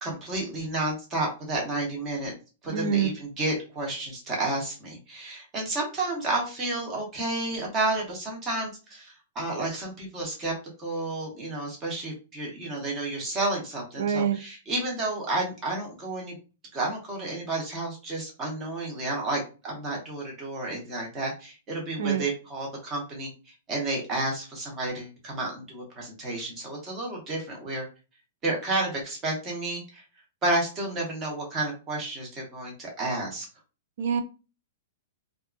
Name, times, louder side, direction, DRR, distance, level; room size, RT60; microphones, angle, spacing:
voice 1, 0.0-2.3 2.6-10.5 10.8-16.3 16.7-27.8 28.4-30.0 30.4-33.5, right 2 dB, 20° right, -1 dB, 0.9 m, -31 dB
voice 2, 2.7-3.1 14.0-14.4 22.0-22.2 34.0-34.2, right 7 dB, 60° right, 9 dB, 0.4 m, -25 dB
2.7 x 2.4 x 2.3 m, 0.32 s
hypercardioid pair, 165°, 0 cm